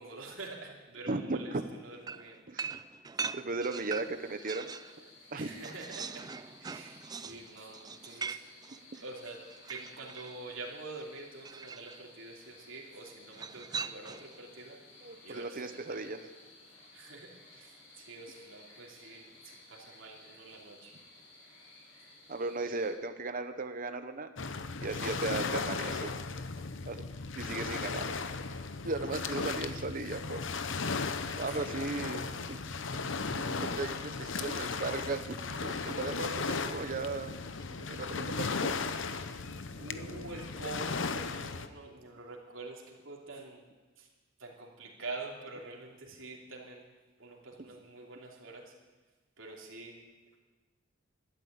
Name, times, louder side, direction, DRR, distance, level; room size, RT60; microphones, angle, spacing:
voice 1, 0.0-1.5 1.8-2.4 5.3-6.3 6.6-8.6 8.9-14.8 15.2-16.1 16.9-20.9 31.5-31.9 39.2-39.4 39.7-43.6 44.0-44.1 44.4-46.9 47.2-48.7 49.4-50.0, right 3 dB, 85° right, -1 dB, 3.0 m, -46 dB
voice 2, 1.1-1.6 2.5-2.8 3.3-4.7 5.3-5.7 15.0-16.2 22.3-24.3 24.8-26.1 26.9-27.0 27.4-28.1 28.8-30.4 30.8-32.6 32.9-33.0 33.6-37.3 37.9-38.8, right 3 dB, 45° right, 9 dB, 1.0 m, -36 dB
sound 1, 2.1-5.0 5.3-10.4 11.4-12.0 13.3-14.4, right 5 dB, 20° right, 0.4 m, -41 dB
sound 2, 3.7-22.9, left 2 dB, 85° left, 5.8 m, -57 dB
Waves surf, 24.4-41.7, left 4 dB, 70° left, 0.9 m, -36 dB
12.5 x 12.5 x 8.8 m, 1.3 s
head